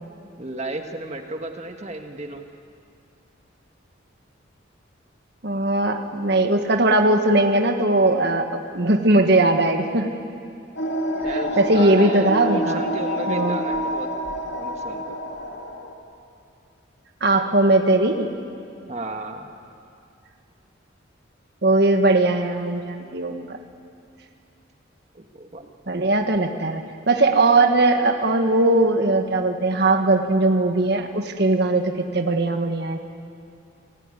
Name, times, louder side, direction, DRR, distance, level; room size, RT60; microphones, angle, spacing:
voice 1, 0.4-2.5 11.2-14.1 14.5-15.2 18.9-19.5 25.1-25.7, right 2 dB, 35° right, 4 dB, 1.6 m, -34 dB
voice 2, 5.4-10.1 11.6-12.8 13.3-13.6 17.2-18.3 21.6-23.6 25.9-33.0, right 2 dB, 55° right, 5 dB, 1.5 m, -19 dB
sound 1, 10.8-15.9, equal, 65° left, 2.6 m, -27 dB
27.5 x 17.5 x 9.9 m, 2.5 s
head